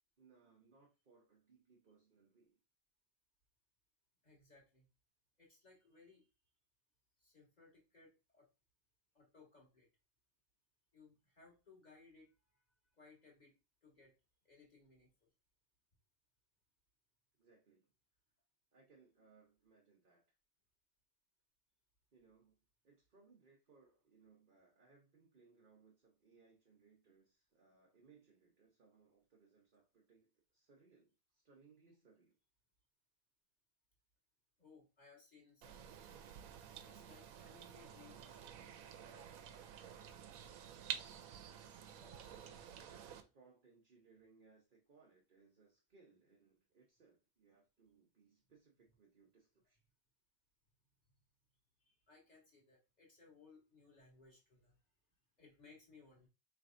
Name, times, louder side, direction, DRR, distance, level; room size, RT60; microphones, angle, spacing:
voice 1, 0.2-2.6 17.4-17.9 18.7-20.4 22.1-22.6 22.8-32.3 42.3-49.8, right 4 dB, 40° right, 1.0 m, -68 dB
voice 2, 4.2-4.9 5.4-6.3 7.2-8.5 9.1-9.9 10.9-12.6 12.9-14.1 14.4-15.3 34.6-36.3 36.8-38.8 39.1-39.5 39.8-40.0 41.9-42.3 51.9-54.8 55.4-56.3, left 4 dB, 30° left, 1.8 m, -64 dB
sound 1, 35.6-43.2, right 9 dB, 80° right, 1.0 m, -50 dB
4.5 x 3.4 x 2.5 m
omnidirectional pair, 1.5 m